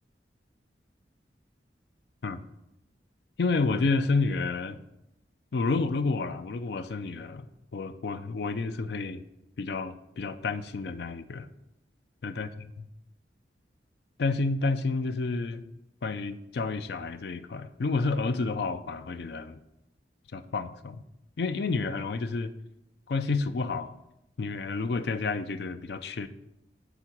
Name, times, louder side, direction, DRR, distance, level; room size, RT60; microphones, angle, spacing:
voice 1, 3.4-4.8 5.5-7.5 7.7-9.2 9.6-11.5 12.2-12.5 14.2-15.6 16.0-19.6 20.3-21.0 21.4-22.5 23.1-23.9 24.4-26.3, left 3 dB, 70° left, 10 dB, 0.4 m, -30 dB
7.2 x 3.9 x 5.8 m, 0.86 s
head